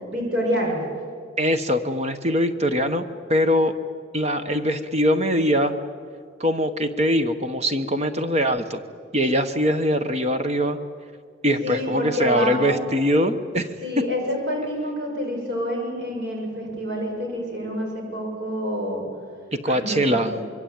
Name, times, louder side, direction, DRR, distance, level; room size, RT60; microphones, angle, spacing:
voice 1, 0.1-0.8 11.6-12.8 13.8-19.0 19.7-20.4, equal, 60° right, 0 dB, 7.3 m, -27 dB
voice 2, 1.4-3.8 4.1-5.7 6.4-8.8 9.1-10.8 11.4-13.7 19.5-20.3, equal, 35° right, 9 dB, 1.2 m, -22 dB
25.5 x 22.5 x 9.0 m, 2.1 s
head